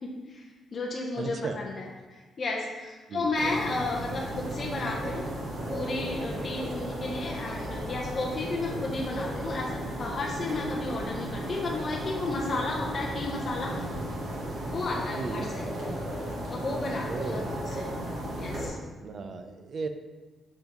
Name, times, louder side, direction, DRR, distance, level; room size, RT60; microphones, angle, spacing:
voice 1, 0.0-5.2 5.7-13.7 14.6-15.6 16.5-17.4 17.8-17.9 18.4-18.8, left 3 dB, 30° left, -2 dB, 0.7 m, -33 dB
voice 2, 1.2-1.6 3.1-3.4 15.2-15.5 17.0-17.5 19.0-19.9, right 4 dB, 40° right, 8 dB, 0.5 m, -35 dB
sound 1, 3.3-18.7, right 1 dB, 55° right, 1.7 m, -35 dB
6.8 x 5.8 x 2.9 m, 1.3 s
cardioid pair, 180°, 0 cm